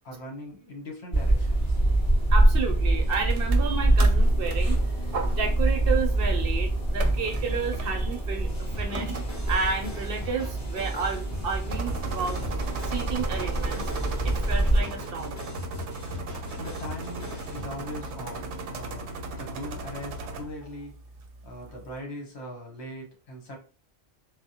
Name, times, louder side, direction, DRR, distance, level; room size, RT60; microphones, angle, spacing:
voice 1, 0.0-1.8 16.5-20.9 21.4-23.6, left 1 dB, 70° left, 0 dB, 1.2 m, -40 dB
sound 1, 1.1-14.8, right 1 dB, 45° left, 1.8 m, -25 dB
voice 2, 2.3-4.8 5.3-9.1 9.5-12.4 12.8-13.9 14.2-15.4, right 5 dB, 65° right, 4 dB, 0.7 m, -31 dB
sound 2, 3.1-22.0, right 3 dB, 90° right, 0.9 m, -38 dB
sound 3, 8.5-17.6, left 2 dB, 20° left, 0.6 m, -41 dB
3.3 x 2.0 x 2.7 m, 0.36 s
omnidirectional pair, 1.1 m